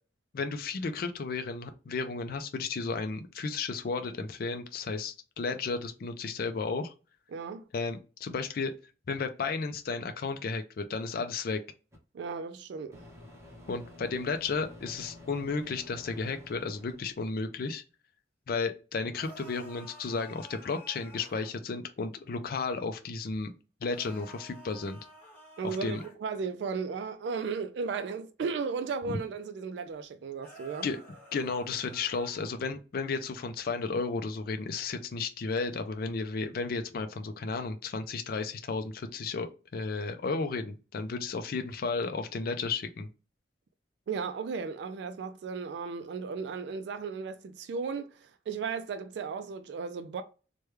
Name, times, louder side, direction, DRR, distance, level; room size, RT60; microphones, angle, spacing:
voice 1, 0.3-6.9 7.7-8.7 9.1-11.6 13.7-17.8 18.5-23.5 23.8-25.0 25.6-26.0 30.8-31.0 31.3-43.1, left 4 dB, 55° left, 0.4 m, -33 dB
voice 2, 7.3-7.7 12.1-13.1 25.6-30.9 44.1-50.2, right 5 dB, 70° right, 0.3 m, -35 dB
Microwave oven, 11.9-12.0 12.9-17.2, left 1 dB, 15° right, 0.9 m, -50 dB
sound 1, 19.1-21.5 23.9-26.2 30.4-32.6, right 1 dB, 10° left, 1.6 m, -51 dB
3.2 x 2.2 x 3.1 m
head